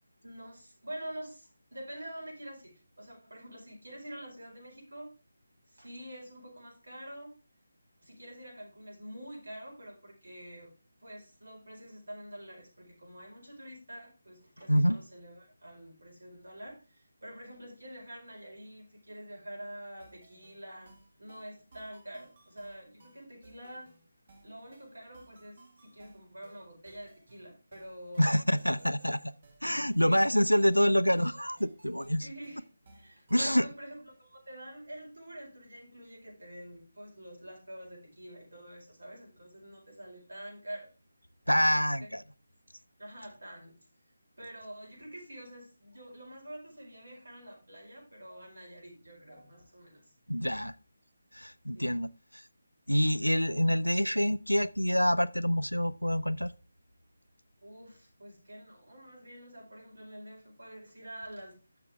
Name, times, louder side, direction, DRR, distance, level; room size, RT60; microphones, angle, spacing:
voice 1, 0.2-5.1 5.7-7.3 8.0-10.7 11.0-20.9 21.2-23.9 24.4-28.3 28.7-28.8 30.0-30.3 32.2-32.6 32.9-40.9 41.6-42.1 43.0-43.7 44.4-50.1 50.5-50.6 51.7-52.0 53.5-53.9 57.6-61.6, right 1 dB, 60° right, 4.7 m, -47 dB
sound 1, 20.0-33.6, right 2 dB, 35° right, 1.8 m, -60 dB
voice 2, 28.2-29.2 29.6-32.3 33.3-33.6 41.5-42.2 50.3-50.7 51.3-52.1 52.3-52.4 52.9-56.5, equal, 90° left, 0.5 m, -26 dB
10.5 x 6.9 x 3.4 m
figure-of-eight pair, 155°, 0 cm